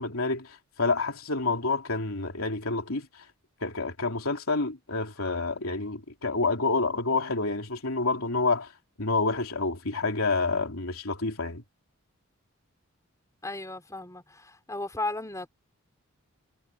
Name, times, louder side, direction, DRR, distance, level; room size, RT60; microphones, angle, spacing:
voice 1, 0.0-3.2 3.6-8.7 9.0-11.6, left 3 dB, 75° left, 3.2 m, -28 dB
voice 2, 13.4-15.5, left 2 dB, 15° left, 4.0 m, -35 dB
head